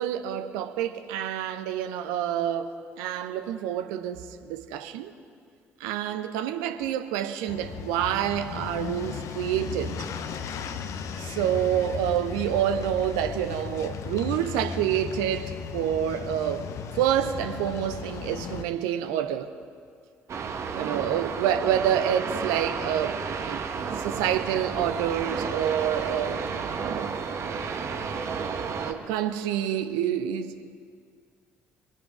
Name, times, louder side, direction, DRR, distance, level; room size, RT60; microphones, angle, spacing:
voice 1, 0.0-4.2 4.4-5.1 5.8-10.0 11.2-16.7 16.9-19.5 20.7-23.2 23.4-26.4 26.8-27.1 28.9-30.6, right 10 dB, 65° right, 0.8 m, -28 dB
sound 1, 7.5-18.6, left 6 dB, 55° left, 0.9 m, -36 dB
sound 2, 20.3-28.9, right 5 dB, 45° right, 1.3 m, -32 dB
23.5 x 9.1 x 4.9 m
figure-of-eight pair, 45°, 7 cm